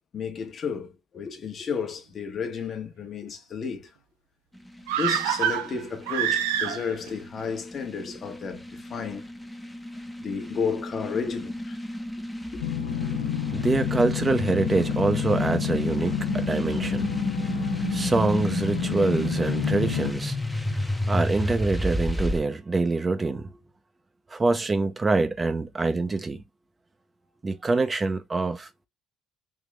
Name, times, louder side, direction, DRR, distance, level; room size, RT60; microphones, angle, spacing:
voice 1, 0.1-3.9 5.0-9.2 10.2-11.8 12.5-12.7, left 5 dB, 45° left, 1.1 m, -32 dB
sound 1, 4.6-22.4, left 1 dB, 5° left, 0.8 m, -31 dB
sound 2, 4.9-7.1 7.4-7.5, right 10 dB, 85° right, 0.6 m, -26 dB
sound 3, 12.6-20.1, left 16 dB, 90° left, 0.4 m, -30 dB
voice 2, 13.5-20.4 21.1-23.5 24.3-26.4 27.4-28.7, right 3 dB, 25° right, 0.8 m, -25 dB
3.6 x 3.0 x 3.3 m
hypercardioid pair, 70°, 0 cm